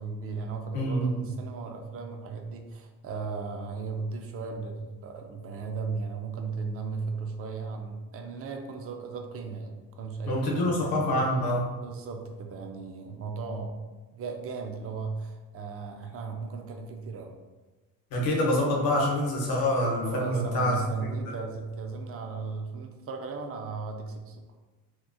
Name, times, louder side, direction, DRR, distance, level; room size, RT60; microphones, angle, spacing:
voice 1, 0.0-11.1 11.8-13.8 14.1-17.4 20.0-24.4, right 4 dB, 40° right, 4 dB, 0.4 m, -36 dB
voice 2, 0.7-1.1 10.3-11.7 18.1-21.3, left 1 dB, 85° left, -2 dB, 0.8 m, -26 dB
2.9 x 2.2 x 2.5 m, 1.2 s
cardioid pair, 90°, 35 cm